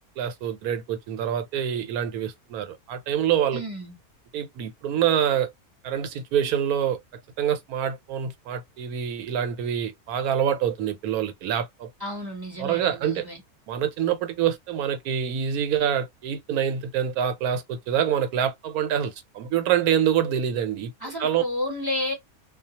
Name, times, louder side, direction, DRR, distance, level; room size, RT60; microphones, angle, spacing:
voice 1, 0.2-3.6 4.3-5.5 5.8-7.0 7.4-11.9 12.6-13.3 13.7-20.9 21.2-21.4, right 9 dB, 85° right, 1.1 m, -26 dB
voice 2, 3.5-4.0 12.0-13.4 21.0-22.1, left 1 dB, 25° right, 0.6 m, -31 dB
2.4 x 2.2 x 2.7 m
omnidirectional pair, 1.6 m